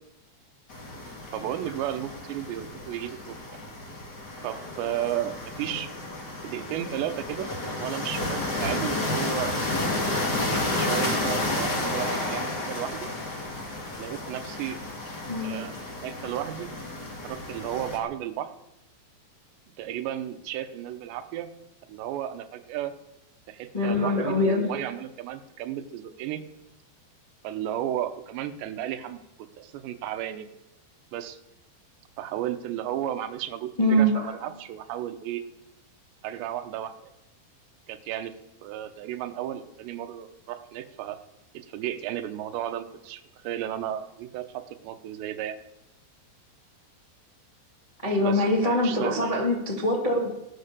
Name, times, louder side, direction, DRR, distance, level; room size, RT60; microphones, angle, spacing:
sound 1, 0.7-18.0, left 2 dB, 30° left, 2.2 m, -31 dB
voice 1, 1.3-3.6 4.4-5.9 6.4-7.5 7.8-9.6 10.5-13.1 14.0-14.8 15.4-16.7 17.2-18.5 19.8-21.5 21.9-22.9 23.5-26.4 27.4-29.2 29.6-30.5 31.1-31.4 32.2-35.4 36.2-37.1 37.9-38.3 38.6-41.2 41.5-45.6 48.2-49.4, right 11 dB, 80° right, 9 dB, 3.0 m, -34 dB
voice 2, 23.7-24.7 33.8-34.4 48.0-50.3, left 1 dB, 60° left, -2 dB, 0.3 m, -24 dB
14.0 x 12.5 x 6.7 m, 0.92 s
omnidirectional pair, 5.2 m